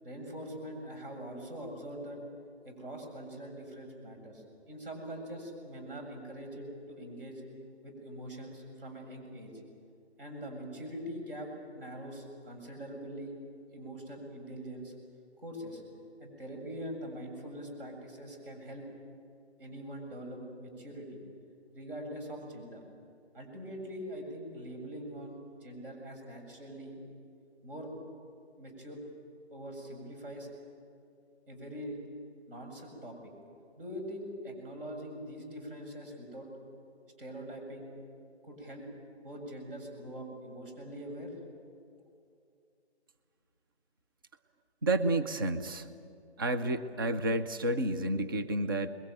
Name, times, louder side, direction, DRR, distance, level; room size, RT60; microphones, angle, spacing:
voice 1, 0.0-2.2 2.6-7.4 7.8-9.5 10.2-13.4 13.7-14.9 15.4-15.8 16.2-18.9 19.6-21.2 21.7-22.8 23.3-27.0 27.6-27.9 28.6-29.0 29.5-30.5 31.5-32.0 32.5-33.2 33.8-36.5 37.2-37.9 38.4-38.9 39.2-41.3, equal, 50° right, 3 dB, 7.6 m, -43 dB
voice 2, 44.8-45.9 46.4-48.9, right 1 dB, 20° right, 10 dB, 0.6 m, -30 dB
26.0 x 22.0 x 9.1 m, 2.4 s
hypercardioid pair, 160°, 34 cm